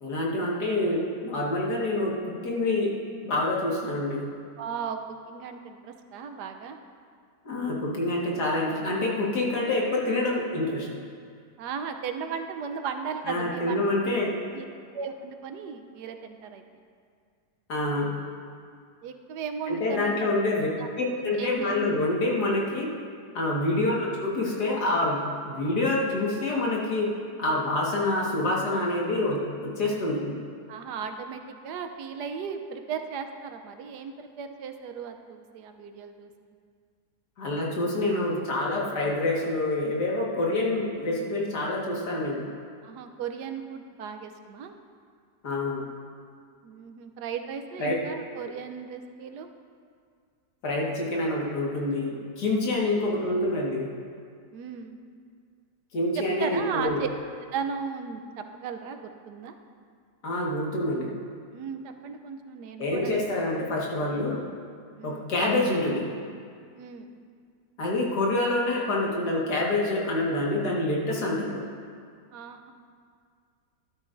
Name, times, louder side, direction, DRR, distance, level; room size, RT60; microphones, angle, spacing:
voice 1, 0.0-2.9 3.2-4.3 7.5-10.9 13.3-14.3 17.7-18.1 19.7-20.7 21.0-22.9 23.3-27.1 27.4-30.4 37.4-42.5 45.4-45.8 47.8-48.0 48.4-48.5 50.6-53.9 55.9-57.0 60.2-61.1 62.8-64.4 65.0-66.0 67.8-71.6, left 2 dB, 70° left, -4 dB, 2.2 m, -27 dB
voice 2, 4.6-5.0 5.3-6.8 11.6-14.0 14.5-14.7 14.9-16.6 19.0-20.3 20.8-20.9 21.4-21.7 23.8-24.1 30.7-36.3 42.8-44.7 46.6-49.5 52.8-53.1 54.5-55.0 56.1-57.1 57.5-59.6 61.5-63.1 65.0-65.3 66.7-67.2 72.3-72.7, right 6 dB, 80° right, 6 dB, 1.3 m, -36 dB
12.5 x 12.5 x 2.6 m, 2.2 s
omnidirectional pair, 1.8 m